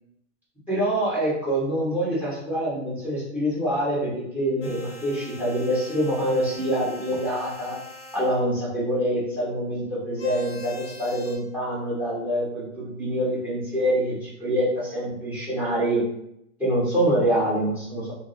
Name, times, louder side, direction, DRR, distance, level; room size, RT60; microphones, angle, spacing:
voice 1, 0.7-7.8 8.1-16.0 16.6-18.1, right 1 dB, 5° right, -7 dB, 1.2 m, -25 dB
sound 1, 4.6-8.4 10.2-11.4, left 1 dB, 50° left, 0.7 m, -43 dB
2.7 x 2.1 x 2.5 m, 0.77 s
figure-of-eight pair, 105°, 40 cm